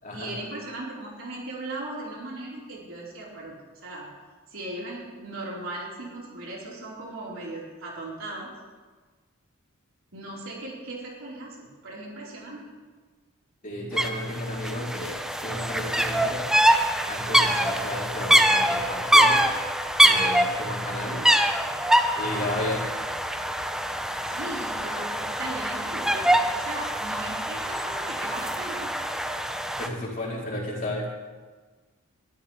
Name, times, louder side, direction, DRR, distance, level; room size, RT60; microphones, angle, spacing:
voice 1, 0.1-3.6 3.8-4.1 4.5-8.5 10.1-12.7 22.1-22.5 24.2-29.0, right 2 dB, 65° right, -5 dB, 4.8 m, -38 dB
voice 2, 13.6-16.4 17.1-19.4 20.0-21.2 22.1-22.8 29.8-31.1, left 1 dB, 40° left, -4 dB, 3.9 m, -32 dB
sound 1, 14.0-14.1 14.3-29.9, right 1 dB, 5° right, 0.7 m, -24 dB
21.5 x 13.0 x 3.5 m, 1.4 s
head